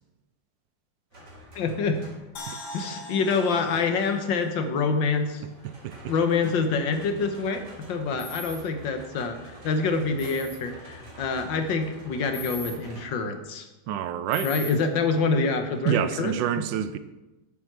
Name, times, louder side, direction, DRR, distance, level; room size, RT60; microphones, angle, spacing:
sound 1, 1.1-2.5 5.2-13.2 15.4-15.9, equal, 65° right, 2.7 m, -47 dB
voice 1, 1.6-2.0 2.7-5.4 6.1-7.6 7.9-13.7 14.4-16.4, left 4 dB, 85° left, 1.8 m, -26 dB
sound 2, 2.4-5.6 5.9-6.0, left 1 dB, 65° left, 1.8 m, -43 dB
sound 3, 8.2-8.6 10.2-10.6 12.3-12.7 14.3-14.7, left 2 dB, 50° left, 2.7 m, -37 dB
voice 2, 13.9-14.5 15.8-17.0, right 10 dB, 85° right, 1.3 m, -27 dB
9.3 x 7.4 x 6.2 m
omnidirectional pair, 2.0 m